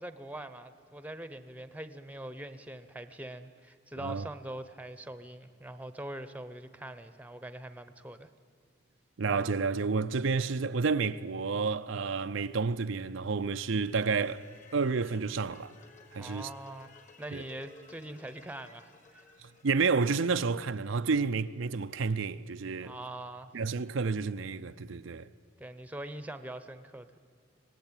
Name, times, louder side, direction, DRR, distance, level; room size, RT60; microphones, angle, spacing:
voice 1, 0.0-8.3 16.2-16.9 17.2-19.2 22.8-23.5 25.6-27.2, right 1 dB, 5° right, 0.9 m, -43 dB
voice 2, 9.2-14.5 14.7-15.7 16.1-16.5 17.3-17.4 19.4-23.0 23.5-25.3, right 4 dB, 70° right, 0.5 m, -30 dB
sound 1, 13.4-21.5, left 4 dB, 35° left, 2.0 m, -57 dB
25.0 x 19.0 x 9.0 m
head